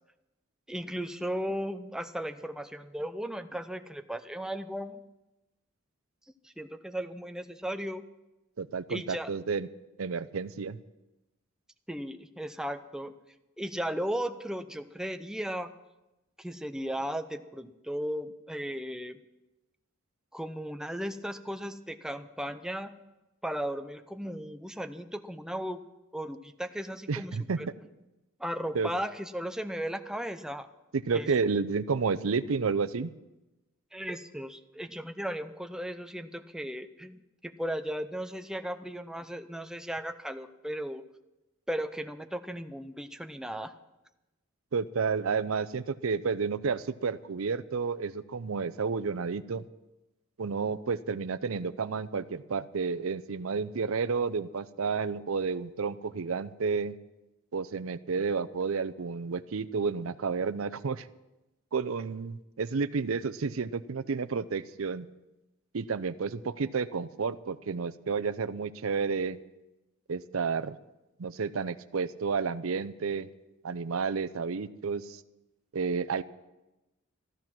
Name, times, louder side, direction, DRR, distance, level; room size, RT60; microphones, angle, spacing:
voice 1, 0.7-5.0 6.4-8.1 8.9-9.3 11.9-13.1 13.6-15.7 16.4-19.2 20.3-22.9 23.4-25.8 26.1-27.7 28.4-30.7 31.1-31.3 33.9-41.0 41.7-43.7, equal, 5° right, 8 dB, 0.6 m, -36 dB
voice 2, 8.6-9.7 10.0-10.8 27.1-27.6 28.7-28.9 30.9-33.1 44.7-49.6 50.4-57.0 57.5-61.1 61.7-65.1 65.7-69.4 70.1-70.8 71.2-73.3 73.6-75.2 75.7-76.2, right 5 dB, 85° right, 14 dB, 0.6 m, -31 dB
14.0 x 13.0 x 6.0 m, 1.0 s
head